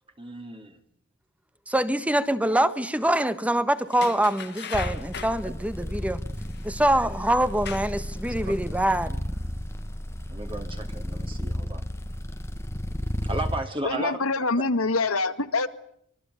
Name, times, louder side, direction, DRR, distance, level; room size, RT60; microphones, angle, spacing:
voice 1, 0.2-0.8 5.4-5.5 7.0-7.1 8.4-8.5 10.3-11.8 13.3-14.2, right 2 dB, 25° right, 2.4 m, -34 dB
voice 2, 1.7-6.2 6.6-9.2, right 1 dB, 5° right, 1.3 m, -24 dB
sound 1, 3.9-5.4 6.5-6.7 7.4-8.1 8.5-8.6, left 7 dB, 50° left, 2.2 m, -37 dB
sound 2, 4.7-13.6, equal, 10° left, 1.4 m, -33 dB
voice 3, 13.8-15.7, left 3 dB, 80° left, 2.0 m, -25 dB
26.0 x 23.0 x 9.3 m
head